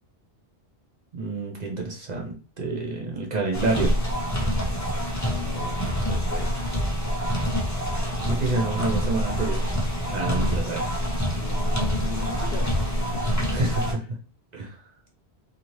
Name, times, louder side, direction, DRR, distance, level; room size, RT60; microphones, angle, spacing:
voice 1, 1.1-3.9 8.2-9.6 10.1-10.8 13.5-13.8 14.5-14.8, right 3 dB, 50° right, 0 dB, 0.6 m, -28 dB
sound 1, 3.5-13.9, equal, 25° left, 0.4 m, -26 dB
voice 2, 5.2-6.6 11.4-13.7, left 4 dB, 70° left, 4 dB, 0.8 m, -38 dB
2.7 x 2.6 x 3.0 m, 0.37 s
omnidirectional pair, 1.1 m